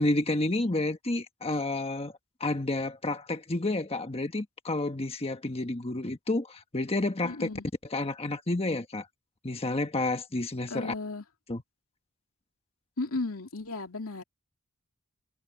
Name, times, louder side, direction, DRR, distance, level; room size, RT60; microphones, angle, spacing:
voice 1, 0.0-2.1 2.4-7.5 7.9-9.1 9.4-10.9 11.5-11.6, left 2 dB, 30° left, 1.3 m, -30 dB
voice 2, 7.2-7.6 10.7-11.2 13.0-14.2, left 3 dB, 80° left, 2.7 m, -34 dB
head